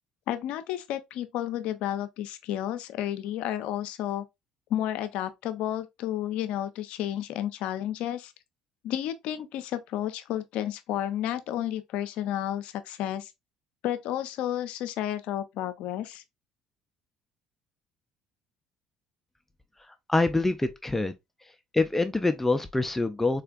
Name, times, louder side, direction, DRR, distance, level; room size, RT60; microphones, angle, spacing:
voice 1, 0.3-4.2 4.7-8.3 8.8-13.3 13.8-16.2, left 12 dB, 70° left, 0.5 m, -31 dB
voice 2, 20.1-21.1 21.7-23.4, left 2 dB, 10° left, 0.4 m, -25 dB
4.2 x 2.4 x 2.3 m
hypercardioid pair, 70°, 2 cm